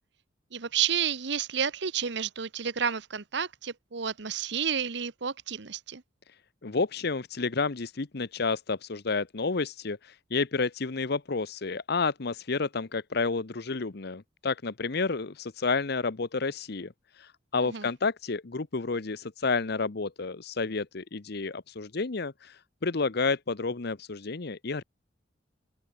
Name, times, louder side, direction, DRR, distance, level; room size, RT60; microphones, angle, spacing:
voice 1, 0.5-6.0 17.6-17.9, right 7 dB, 65° right, 1.1 m, -31 dB
voice 2, 6.6-24.8, left 4 dB, 60° left, 0.9 m, -30 dB
open air
head